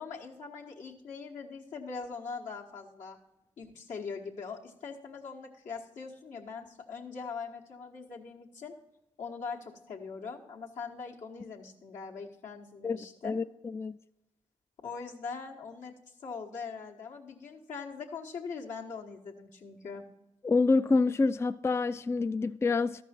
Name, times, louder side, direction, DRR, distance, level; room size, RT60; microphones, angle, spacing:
voice 1, 0.0-3.2 3.6-8.7 9.2-13.4 14.8-20.0, left 5 dB, 75° left, 1.3 m, -42 dB
voice 2, 13.2-14.0 20.4-23.0, left 3 dB, 20° left, 0.3 m, -27 dB
13.0 x 5.4 x 4.3 m
supercardioid pair, 45°, 13 cm